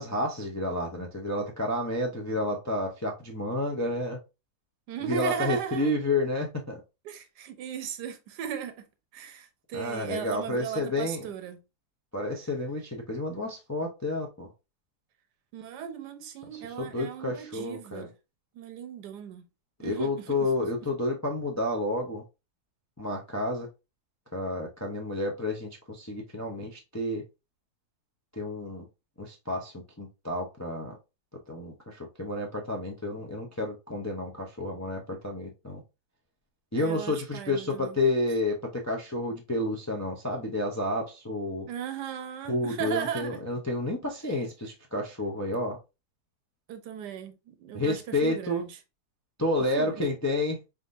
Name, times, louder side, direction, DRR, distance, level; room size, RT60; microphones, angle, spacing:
voice 1, 0.0-4.2 5.1-6.8 9.7-11.3 12.1-14.5 16.8-18.1 19.8-22.2 23.0-23.7 24.3-27.2 28.4-28.8 29.2-31.0 31.5-35.8 36.7-41.7 42.5-45.8 47.7-48.6 49.4-50.6, left 1 dB, 30° left, 0.3 m, -30 dB
voice 2, 4.9-5.9 7.0-8.9 9.1-11.6 15.5-18.1 18.5-19.4 19.8-20.7 36.7-38.0 41.7-43.4 46.7-48.7 49.7-50.0, right 9 dB, 90° right, 1.3 m, -37 dB
4.2 x 3.7 x 2.6 m
omnidirectional pair, 1.7 m